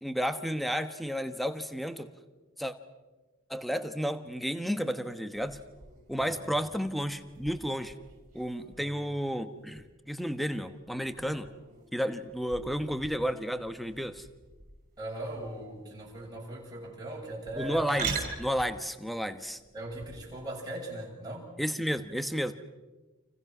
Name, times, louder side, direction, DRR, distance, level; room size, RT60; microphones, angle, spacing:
voice 1, 0.0-2.1 2.6-2.7 3.5-5.6 6.1-7.9 8.3-11.5 11.9-14.3 17.6-19.6 21.6-22.5, equal, ahead, 9 dB, 1.1 m, -32 dB
sound 1, 5.3-20.4, right 5 dB, 40° right, 6.1 m, -44 dB
voice 2, 6.2-6.5 8.8-9.0 15.0-17.8 19.7-21.5, right 1 dB, 20° right, -3 dB, 7.8 m, -39 dB
29.5 x 28.0 x 6.1 m, 1.2 s
head